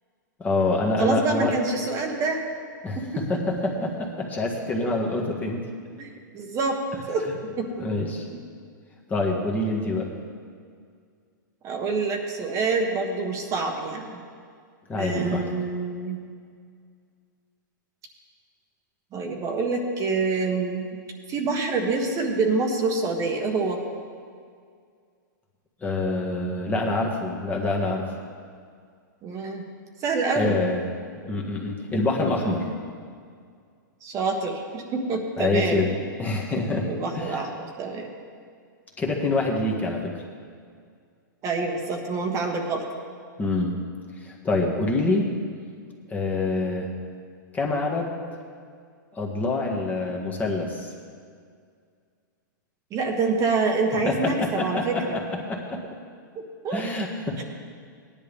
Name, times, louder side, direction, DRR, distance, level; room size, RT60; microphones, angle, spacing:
voice 1, 0.4-1.5 2.8-5.6 7.8-8.3 9.1-10.1 14.9-15.4 25.8-28.1 30.4-30.8 31.2-32.7 35.4-37.5 39.0-40.1 43.4-43.8 44.2-45.3 46.1-46.9 47.5-48.1 49.2-50.9 54.1-55.8 56.7-57.4, left 2 dB, 15° left, -1 dB, 1.6 m, -26 dB
voice 2, 1.0-2.4 3.0-3.4 4.8-4.9 6.0-6.8 7.1-7.3 7.6-7.8 8.3-8.4 11.6-14.2 15.0-16.2 19.1-21.0 21.3-23.8 29.2-29.6 30.0-30.6 34.0-35.9 36.3-36.4 36.9-38.1 41.4-42.8 52.9-55.2 56.6-56.8 57.4-57.5, right 3 dB, 30° right, 2 dB, 1.4 m, -26 dB
17.5 x 10.5 x 3.5 m, 2.1 s
hypercardioid pair, 130°, 11 cm